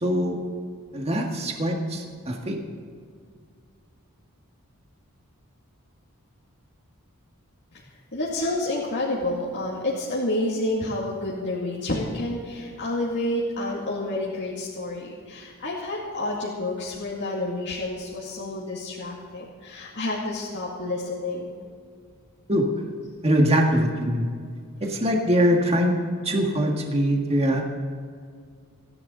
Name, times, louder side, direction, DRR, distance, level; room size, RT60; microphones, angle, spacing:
voice 1, 0.0-0.4 0.9-2.6 22.5-22.7 23.2-24.3 24.8-26.0 26.2-27.6, equal, 30° right, 1 dB, 1.8 m, -22 dB
voice 2, 8.1-21.5, left 1 dB, 55° left, -5 dB, 2.3 m, -29 dB
28.5 x 10.5 x 3.9 m, 2.1 s
head